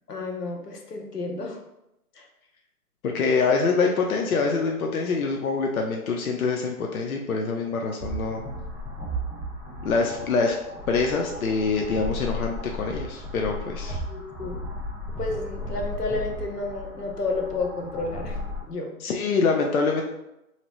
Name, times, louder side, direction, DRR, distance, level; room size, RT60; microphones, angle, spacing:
voice 1, 0.1-1.6 2.2-2.3 14.1-14.6 15.2-18.4 18.7-18.9, left 3 dB, 90° left, 2 dB, 0.9 m, -31 dB
voice 2, 3.0-8.4 9.8-10.6 10.9-14.0 19.0-20.0, left 4 dB, 65° left, 1 dB, 0.6 m, -25 dB
sound 1, 8.0-18.6, left 1 dB, ahead, 0.3 m, -35 dB
2.9 x 2.8 x 3.0 m, 0.88 s
hypercardioid pair, 160°, 46 cm